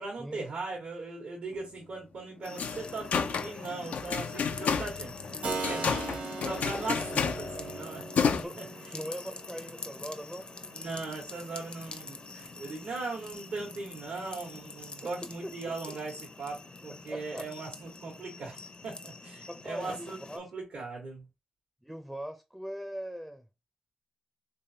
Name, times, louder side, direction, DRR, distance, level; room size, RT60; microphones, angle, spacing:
voice 1, 0.0-6.1 6.4-8.9 10.7-18.6 18.8-21.3, right 3 dB, 80° right, 1.3 m, -39 dB
sound 1, 2.4-20.4, left 3 dB, 40° left, 0.6 m, -45 dB
sound 2, 2.5-8.4, left 6 dB, 85° left, 0.4 m, -31 dB
Keyboard (musical), 5.4-14.0, right 4 dB, 60° right, 1.1 m, -42 dB
voice 2, 8.9-10.5 15.0-15.1 15.4-15.5 15.9-16.0 17.1-17.5 19.5-20.5 21.8-23.5, equal, 5° right, 0.5 m, -40 dB
3.3 x 3.3 x 2.8 m
cardioid pair, 75°, 3 cm